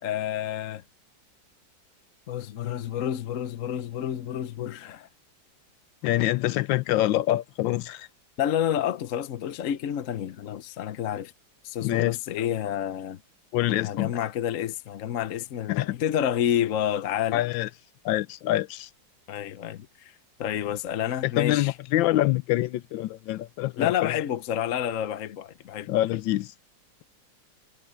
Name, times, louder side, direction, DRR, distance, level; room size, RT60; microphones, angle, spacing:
voice 1, 0.0-0.8 2.3-5.1 8.4-11.3 11.6-13.2 13.8-17.5 19.3-21.8 23.8-25.9, left 10 dB, 60° left, 0.9 m, -29 dB
voice 2, 6.0-8.1 11.8-12.4 13.5-14.2 15.7-15.9 17.3-17.7 18.0-18.9 21.2-24.1 25.9-26.5, left 15 dB, 85° left, 1.4 m, -25 dB
omnidirectional pair, 2.0 m